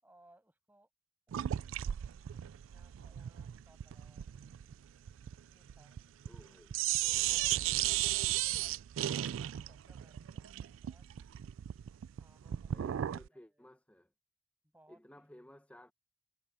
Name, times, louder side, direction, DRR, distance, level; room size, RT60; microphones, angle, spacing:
voice 1, 0.0-0.9 1.3-4.4 5.3-6.6 7.2-11.1 12.1-13.7 14.7-15.3, right 1 dB, 10° right, 6.3 m, -67 dB
sound 1, 1.3-6.5 6.7-13.3, right 13 dB, 90° right, 0.3 m, -35 dB
voice 2, 6.2-6.7 12.7-14.1 14.9-15.9, equal, 5° left, 0.8 m, -56 dB
head